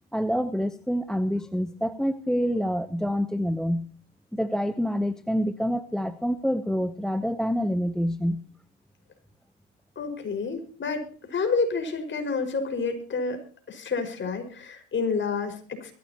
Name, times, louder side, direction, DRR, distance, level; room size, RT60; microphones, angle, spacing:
voice 1, 0.1-3.9 4.3-8.4, equal, ahead, 12 dB, 0.8 m, -27 dB
voice 2, 10.0-13.4 13.7-15.9, left 4 dB, 30° left, 6 dB, 5.5 m, -29 dB
22.5 x 15.0 x 3.0 m, 0.42 s
supercardioid pair, 95°, 35 cm